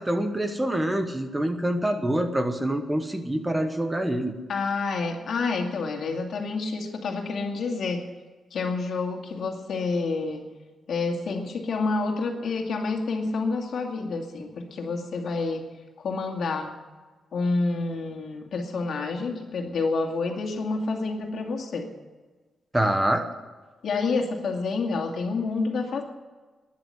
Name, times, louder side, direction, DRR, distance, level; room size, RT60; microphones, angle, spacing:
voice 1, 0.0-4.3 22.7-23.2, right 1 dB, 10° right, 6 dB, 1.1 m, -25 dB
voice 2, 4.5-8.0 8.5-10.4 10.9-15.7 16.0-16.7 17.3-21.9 23.8-26.0, left 3 dB, 60° left, 2 dB, 2.4 m, -28 dB
12.5 x 10.5 x 9.8 m, 1.3 s
wide cardioid pair, 170°, 0 cm